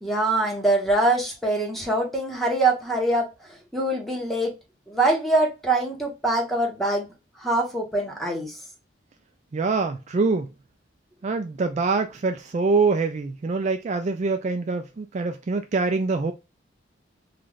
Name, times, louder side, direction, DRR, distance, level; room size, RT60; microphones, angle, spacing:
voice 1, 0.0-3.3 3.7-4.5 4.9-7.1 7.4-8.6, right 2 dB, ahead, 1.1 m, -23 dB
voice 2, 9.5-10.5 11.2-16.3, right 4 dB, 40° right, 0.3 m, -24 dB
3.2 x 2.5 x 3.8 m
head